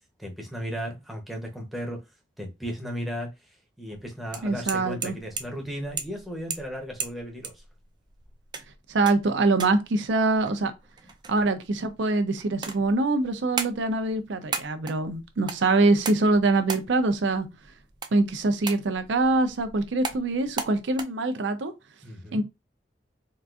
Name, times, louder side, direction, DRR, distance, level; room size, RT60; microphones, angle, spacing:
voice 1, 0.2-2.0 2.4-7.6 22.0-22.4, equal, ahead, 0.7 m, -35 dB
sound 1, 3.9-21.0, right 5 dB, 25° right, 0.3 m, -39 dB
voice 2, 4.4-5.2 8.9-10.7 11.3-17.5 18.1-21.7 22.3-22.4, right 2 dB, 85° right, 0.5 m, -24 dB
3.8 x 2.5 x 2.4 m
head